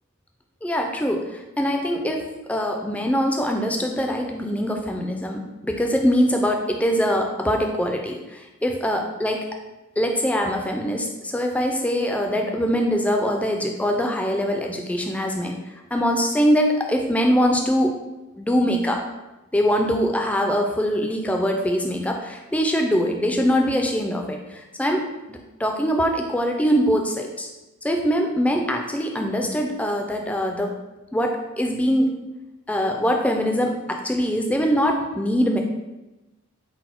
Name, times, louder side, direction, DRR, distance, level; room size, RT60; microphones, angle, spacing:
voice 1, 0.6-2.2 2.5-9.5 10.0-15.6 15.9-17.9 18.4-19.0 19.5-27.5 27.8-30.7 31.1-32.1 32.7-35.6, equal, 5° left, 2 dB, 0.3 m, -23 dB
4.0 x 2.1 x 4.4 m, 1.0 s
head